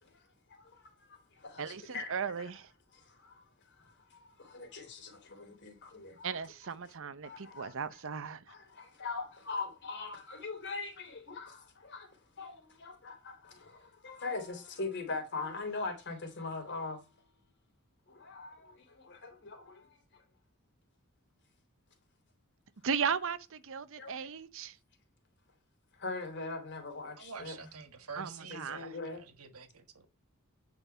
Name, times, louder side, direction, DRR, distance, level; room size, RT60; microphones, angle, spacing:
voice 1, 0.0-2.1 2.9-6.4 7.2-7.8 8.5-17.0 18.1-20.2 24.0-24.2 26.0-27.6 28.5-29.2, left 3 dB, 55° left, 3.1 m, -42 dB
voice 2, 1.6-2.7 6.2-8.4 22.8-24.8 28.2-29.0, right 6 dB, 65° right, 0.7 m, -36 dB
voice 3, 27.2-30.1, right 5 dB, 85° right, 1.5 m, -48 dB
9.7 x 5.3 x 5.6 m
head